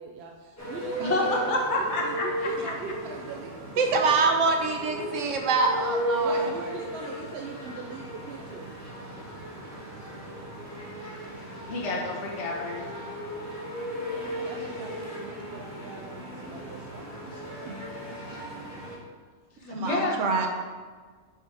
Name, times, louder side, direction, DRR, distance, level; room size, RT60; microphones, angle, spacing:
voice 1, 0.0-4.2 6.2-8.7 14.4-17.8, right 4 dB, 65° right, 1 dB, 0.7 m, -41 dB
sound 1, 0.6-19.0, equal, 15° left, 1.3 m, -36 dB
voice 2, 1.0-2.7 11.7-12.8 19.6-20.2, left 2 dB, 70° left, -2 dB, 1.4 m, -28 dB
voice 3, 3.8-6.7 19.6-20.5, right 4 dB, 80° right, 3 dB, 1.1 m, -25 dB
5.0 x 4.4 x 4.8 m, 1.5 s
omnidirectional pair, 1.3 m